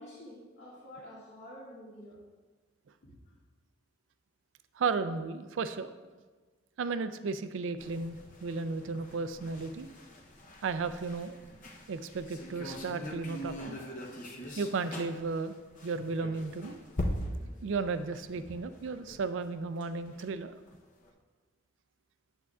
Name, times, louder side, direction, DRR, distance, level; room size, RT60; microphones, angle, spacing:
voice 1, 0.0-2.2 3.0-3.3, equal, 60° left, -6 dB, 2.0 m, -49 dB
voice 2, 4.8-5.9 6.8-9.9 10.6-11.4 11.9-13.8 14.6-16.8 17.6-20.5, right 4 dB, 70° right, 12 dB, 0.4 m, -34 dB
sound 1, 7.8-20.2 20.7-20.8 21.0-21.1, equal, 40° left, 0.7 m, -42 dB
8.5 x 7.8 x 2.4 m, 1.4 s
head